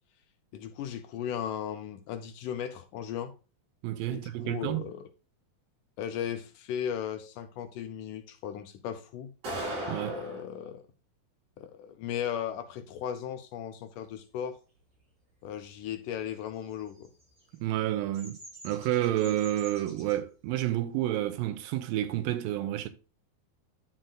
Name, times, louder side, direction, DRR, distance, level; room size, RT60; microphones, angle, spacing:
voice 1, 0.5-3.3 4.1-5.0 6.0-9.3 10.0-10.8 11.6-14.6 15.4-17.1, left 9 dB, 75° left, 2.0 m, -36 dB
voice 2, 3.8-4.8 9.9-10.2 17.6-18.4 18.6-22.9, right 13 dB, 80° right, 2.2 m, -29 dB
sound 1, 9.4-10.5, right 1 dB, 60° right, 6.5 m, -35 dB
Bird vocalization bird call bird song, 16.5-20.2, right 1 dB, 30° right, 5.3 m, -49 dB
11.0 x 7.6 x 2.3 m
omnidirectional pair, 4.2 m